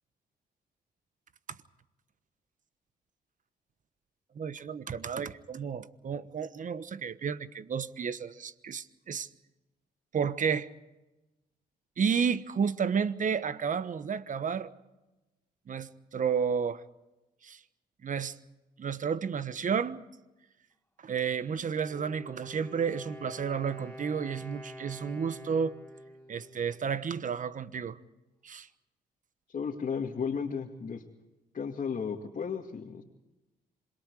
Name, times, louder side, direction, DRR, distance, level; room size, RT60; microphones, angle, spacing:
voice 1, 4.3-9.3 10.1-10.7 12.0-14.7 15.7-16.8 17.4-17.6 18.0-18.4 18.8-20.0 21.0-25.7 26.3-28.0 28.4-28.7, right 6 dB, 50° right, 14 dB, 1.2 m, -31 dB
Wind instrument woodwind instrument, 21.8-27.5, left 1 dB, 10° left, 5.1 m, -47 dB
voice 2, 29.5-31.0 31.5-33.0, left 6 dB, 50° left, -1 dB, 2.3 m, -34 dB
27.0 x 22.0 x 4.9 m, 1.0 s
supercardioid pair, 65°, 17 cm